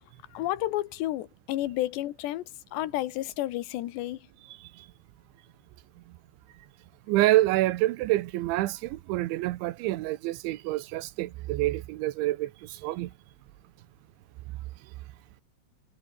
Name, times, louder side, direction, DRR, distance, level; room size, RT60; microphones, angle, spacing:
voice 1, 0.3-2.4 2.7-4.2, left 15 dB, 70° left, 3.4 m, -31 dB
voice 2, 7.1-13.1, right 17 dB, 80° right, 3.3 m, -27 dB
omnidirectional pair, 5.4 m